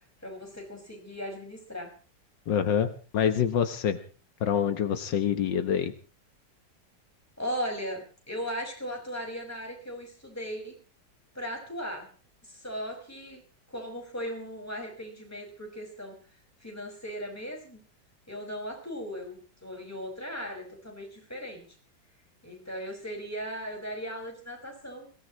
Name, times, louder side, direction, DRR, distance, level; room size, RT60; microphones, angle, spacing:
voice 1, 0.2-1.9 7.4-10.8 11.3-12.1 12.4-13.4 13.7-16.2 16.6-17.8 18.3-21.6 22.4-25.1, equal, 10° left, 1 dB, 5.7 m, -37 dB
voice 2, 2.5-2.9 3.1-4.0 4.4-5.9, left 8 dB, 80° left, 8 dB, 1.9 m, -26 dB
23.0 x 18.0 x 3.1 m, 0.38 s
omnidirectional pair, 2.0 m